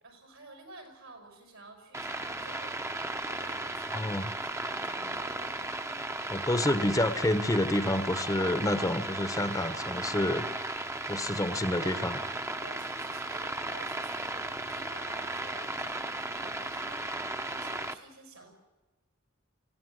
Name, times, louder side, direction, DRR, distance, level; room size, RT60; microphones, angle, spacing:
voice 1, 0.0-2.7 3.2-4.1 4.3-5.8 11.3-12.2 12.5-18.5, right 2 dB, 80° right, 4 dB, 6.3 m, -51 dB
sound 1, 1.9-17.9, right 2 dB, 15° right, 0.9 m, -35 dB
voice 2, 3.9-4.3 6.3-10.5 11.1-12.2, left 1 dB, 15° left, 11 dB, 1.0 m, -28 dB
24.5 x 16.0 x 8.0 m, 1.2 s
head